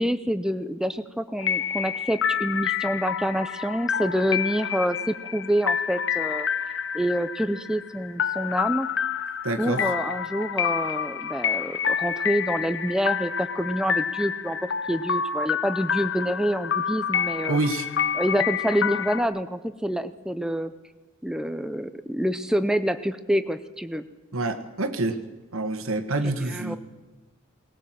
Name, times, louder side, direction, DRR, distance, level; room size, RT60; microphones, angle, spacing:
voice 1, 0.0-6.5 6.9-8.9 9.6-14.6 14.9-17.6 18.1-20.7 21.2-24.1 26.2-26.8, equal, 5° right, 11 dB, 0.5 m, -27 dB
sound 1, 1.4-19.2, left 7 dB, 60° left, 0.8 m, -28 dB
voice 2, 9.4-9.9 17.5-17.9 24.3-25.2 25.5-26.8, right 2 dB, 85° right, 7 dB, 1.5 m, -27 dB
19.0 x 18.5 x 7.6 m, 1.2 s
head